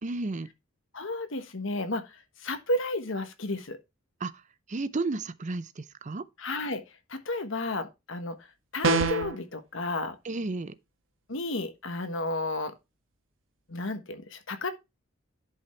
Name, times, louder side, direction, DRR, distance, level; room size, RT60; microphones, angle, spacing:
voice 1, 0.0-0.5 4.2-4.3 4.7-6.2 10.2-10.8, right 3 dB, 35° right, 0.5 m, -32 dB
voice 2, 0.9-2.1 2.4-3.8 6.4-6.8 7.1-8.4 8.7-10.2 11.3-12.7 13.7-14.7, left 2 dB, 65° left, 1.3 m, -32 dB
sound 1, 8.8-9.4, right 3 dB, 65° right, 1.3 m, -24 dB
10.5 x 5.6 x 3.3 m
head